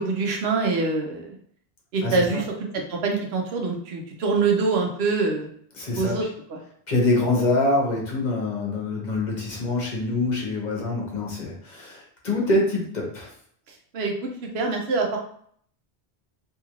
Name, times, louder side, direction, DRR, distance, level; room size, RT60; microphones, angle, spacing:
voice 1, 0.0-1.4 1.9-2.4 2.7-5.5 6.0-6.2 13.9-14.3 14.5-15.2, right 4 dB, 80° right, 1 dB, 0.9 m, -24 dB
voice 2, 2.0-2.4 5.7-6.1 6.9-13.3, left 2 dB, 50° left, -3 dB, 0.9 m, -25 dB
2.8 x 2.5 x 2.9 m, 0.62 s
omnidirectional pair, 1.1 m